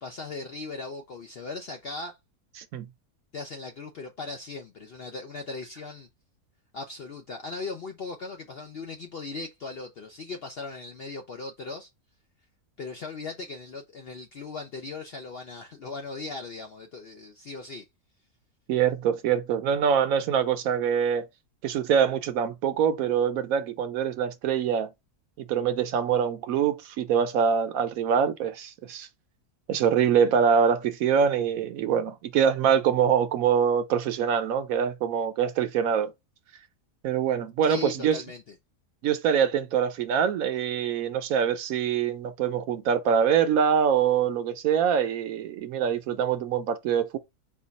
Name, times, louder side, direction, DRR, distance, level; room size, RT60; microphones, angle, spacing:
voice 1, 0.0-2.2 3.3-6.1 6.7-11.9 12.8-17.8 37.6-38.6, left 3 dB, 60° left, 0.6 m, -38 dB
voice 2, 18.7-21.3 21.6-24.9 25.5-29.1 29.7-36.1 37.0-38.2 39.0-47.2, right 7 dB, 70° right, 1.0 m, -24 dB
4.4 x 2.4 x 4.0 m
omnidirectional pair, 1.6 m